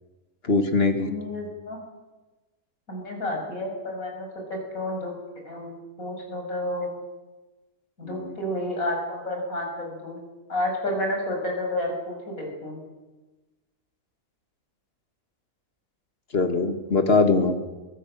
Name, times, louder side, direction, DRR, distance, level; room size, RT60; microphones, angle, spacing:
voice 1, 0.4-1.1 8.0-8.3 16.3-17.5, left 3 dB, 40° left, 7 dB, 2.2 m, -22 dB
voice 2, 1.0-1.8 2.9-5.1 5.4-7.0 8.0-10.2 10.5-12.8, left 1 dB, 65° left, 1 dB, 6.7 m, -30 dB
24.5 x 15.5 x 7.7 m, 1.1 s
omnidirectional pair, 1.6 m